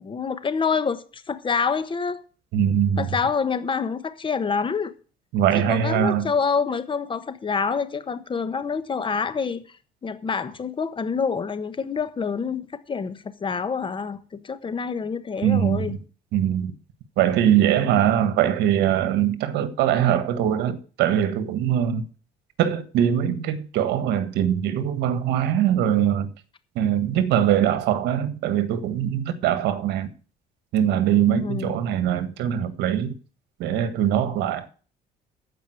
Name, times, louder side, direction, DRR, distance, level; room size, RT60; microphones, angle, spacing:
voice 1, 0.0-2.2 3.0-4.9 5.5-9.6 10.0-16.0 31.3-31.8, left 5 dB, 30° left, 1.3 m, -27 dB
voice 2, 2.5-3.1 5.3-6.3 15.4-16.0 16.3-16.7 17.2-22.1 22.6-26.3 26.7-30.1 30.7-33.1 33.6-34.7, right 10 dB, 85° right, 1.5 m, -22 dB
14.0 x 5.3 x 7.9 m
cardioid pair, 110°, 17 cm